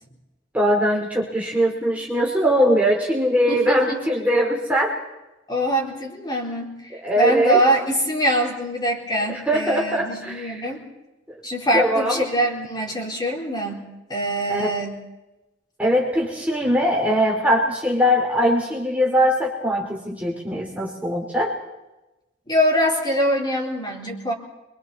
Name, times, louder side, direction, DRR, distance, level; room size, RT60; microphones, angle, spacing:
voice 1, 0.5-5.0 7.0-7.6 9.3-10.7 11.3-11.4 11.7-12.2 14.5-14.8 15.8-21.6, equal, 10° right, -2 dB, 2.7 m, -21 dB
voice 2, 3.5-4.0 5.5-10.8 11.4-13.8 14.1-15.0 22.5-24.3, right 1 dB, 25° left, 0 dB, 3.8 m, -23 dB
27.5 x 23.0 x 4.2 m, 1.0 s
head